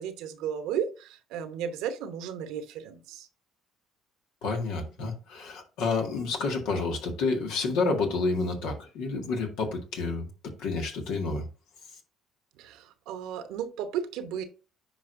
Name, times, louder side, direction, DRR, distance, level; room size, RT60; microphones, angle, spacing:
voice 1, 0.0-3.3 12.6-14.4, right 8 dB, 75° right, 1.0 m, -34 dB
voice 2, 4.4-11.5, left 3 dB, 75° left, 1.9 m, -29 dB
10.0 x 4.7 x 2.6 m
hypercardioid pair, 60°, 0 cm